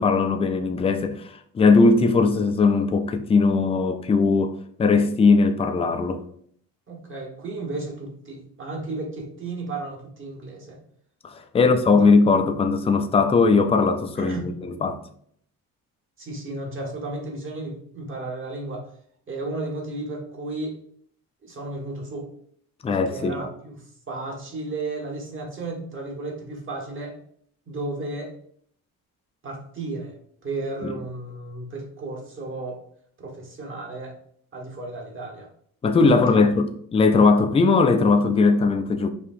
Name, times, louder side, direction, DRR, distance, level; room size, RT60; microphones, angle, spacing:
voice 1, 0.0-6.2 11.2-15.0 22.8-23.4 30.8-30.9 35.8-39.1, left 4 dB, 15° left, 0.3 m, -19 dB
voice 2, 6.9-10.8 11.6-11.7 14.2-14.5 16.2-18.9 19.3-20.8 21.4-22.3 22.9-27.2 27.7-28.3 29.4-30.1 30.4-32.8 33.2-34.2 34.5-35.5 36.1-36.4, right 2 dB, 35° right, 1.3 m, -33 dB
5.0 x 2.9 x 2.5 m
cardioid pair, 110°, 36 cm